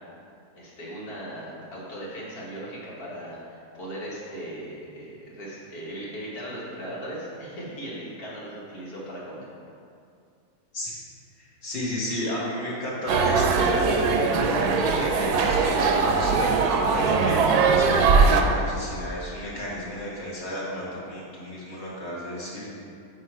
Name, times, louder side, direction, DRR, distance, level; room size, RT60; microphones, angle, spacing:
voice 1, 0.6-9.5, right 1 dB, 75° left, -6 dB, 2.0 m, -38 dB
voice 2, 11.4-14.2 14.9-22.7, left 1 dB, 45° left, -6 dB, 1.6 m, -33 dB
sound 1, 13.1-18.4, right 4 dB, 80° right, 1.1 m, -21 dB
9.4 x 3.2 x 4.5 m, 2.5 s
omnidirectional pair, 1.6 m